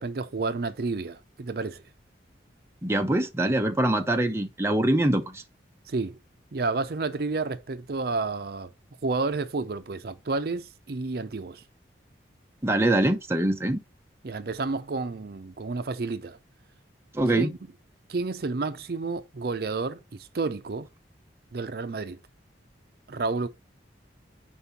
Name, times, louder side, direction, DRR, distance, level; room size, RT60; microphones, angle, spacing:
voice 1, 0.0-1.8 5.9-6.2 6.5-8.7 9.0-11.6 14.2-16.4 17.3-17.6 18.1-20.9 21.5-22.2 23.1-23.5, right 3 dB, 55° right, 0.5 m, -30 dB
voice 2, 2.8-5.4 12.6-13.8 17.1-17.5, right 1 dB, 15° right, 0.6 m, -24 dB
5.4 x 4.5 x 4.1 m
head